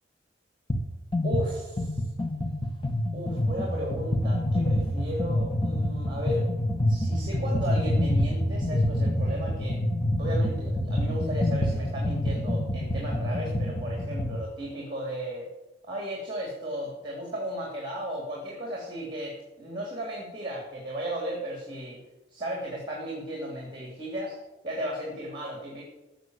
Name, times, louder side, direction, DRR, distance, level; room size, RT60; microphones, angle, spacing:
sound 1, 0.7-0.9 1.1-14.4, left 1 dB, 30° left, 1.4 m, -27 dB
voice 1, 1.2-2.1 3.1-6.5 6.8-9.8 10.2-15.5 15.8-22.0 22.3-24.4 24.6-25.8, equal, 25° right, -2 dB, 3.3 m, -35 dB
16.0 x 6.7 x 8.2 m, 1.0 s
head